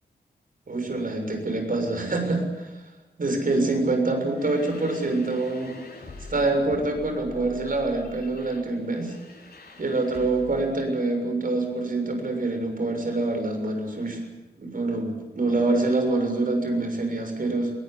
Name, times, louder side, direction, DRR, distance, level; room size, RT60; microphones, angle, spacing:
voice 1, 0.7-2.8 3.2-5.7 6.3-9.1 9.8-14.2 14.6-17.7, right 2 dB, 55° right, 4 dB, 6.7 m, -25 dB
sound 1, 4.3-10.7, left 1 dB, 65° left, 7.6 m, -45 dB
21.5 x 18.5 x 9.8 m, 1.1 s
wide cardioid pair, 80°, 17 cm